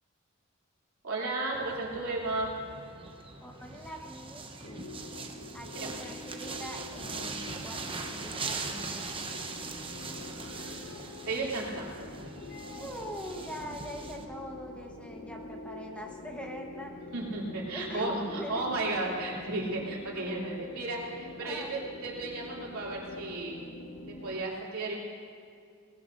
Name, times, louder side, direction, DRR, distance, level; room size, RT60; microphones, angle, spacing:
voice 1, 1.0-2.5 5.8-6.0 10.2-12.1 17.1-23.6 24.2-25.0, right 2 dB, 75° right, -4 dB, 2.9 m, -34 dB
sound 1, 1.5-14.2, right 4 dB, 25° right, 0.8 m, -41 dB
voice 2, 3.4-4.8 5.5-9.4 12.8-16.9 17.7-18.6 21.4-21.7, equal, 5° left, 0 dB, 1.1 m, -42 dB
sound 2, 4.6-24.4, left 2 dB, 80° left, 1.0 m, -46 dB
sound 3, 8.2-9.3 10.3-11.7 12.0-12.9 13.2-13.7, left 3 dB, 50° left, 1.8 m, -51 dB
19.0 x 18.0 x 2.6 m, 2.2 s
head